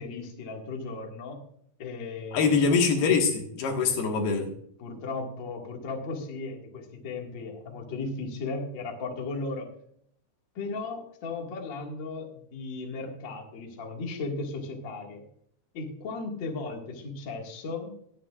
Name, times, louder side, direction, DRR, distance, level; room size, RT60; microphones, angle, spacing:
voice 1, 0.0-1.4 1.8-2.7 4.8-9.7 10.6-15.2 15.7-18.0, left 3 dB, 40° left, 1 dB, 2.0 m, -36 dB
voice 2, 2.3-4.5, left 5 dB, 80° left, 2 dB, 3.6 m, -24 dB
21.0 x 9.3 x 2.5 m, 0.67 s
omnidirectional pair, 4.4 m